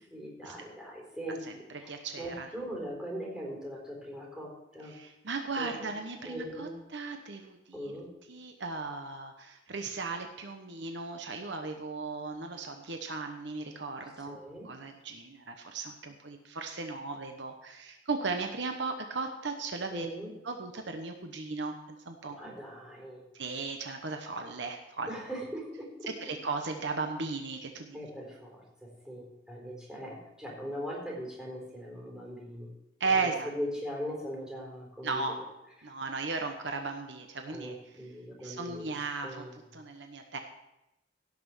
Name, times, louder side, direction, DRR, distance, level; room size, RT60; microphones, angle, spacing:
voice 1, 0.1-1.4 1.7-4.9 5.6-5.9 6.2-6.7 7.7-8.1 14.0-14.7 19.9-20.3 22.3-23.2 25.1-26.4 27.9-32.7 33.0-35.4 35.8-35.9 37.5-38.9 39.2-39.7, equal, 5° right, -3 dB, 4.2 m, -40 dB
voice 2, 1.9-2.5 4.9-8.0 8.3-14.4 14.6-20.1 20.4-21.8 22.1-22.4 23.3-25.1 26.2-28.0 33.0-33.5 35.0-35.4 35.8-37.7 38.4-39.4 39.7-40.4, right 4 dB, 65° right, 5 dB, 1.0 m, -36 dB
17.0 x 6.0 x 6.1 m, 0.91 s
head